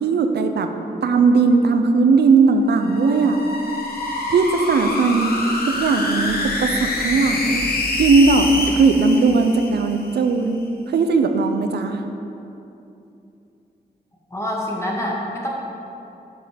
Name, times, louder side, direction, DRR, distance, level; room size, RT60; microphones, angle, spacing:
voice 1, 0.0-0.7 1.0-3.4 4.3-5.4 5.7-7.6 8.0-10.6 10.9-12.0, right 4 dB, 80° right, 7 dB, 0.6 m, -18 dB
sound 1, 2.7-10.2, left 2 dB, 65° left, 1.3 m, -26 dB
voice 2, 14.3-15.5, left 1 dB, 15° left, -3 dB, 2.1 m, -26 dB
9.0 x 5.5 x 5.1 m, 2.8 s
cardioid pair, 50°, 17 cm